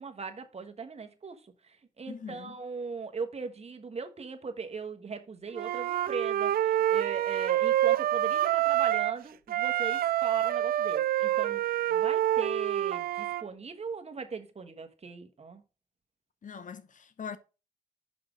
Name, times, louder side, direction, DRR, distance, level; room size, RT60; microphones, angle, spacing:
voice 1, 0.0-15.6, right 5 dB, 45° right, 1.3 m, -39 dB
voice 2, 2.1-2.6 16.4-17.4, left 6 dB, 55° left, 0.9 m, -42 dB
Wind instrument woodwind instrument, 5.5-9.2 9.5-13.4, right 12 dB, 75° right, 0.4 m, -27 dB
5.7 x 5.2 x 5.0 m
cardioid pair, 60°, 16 cm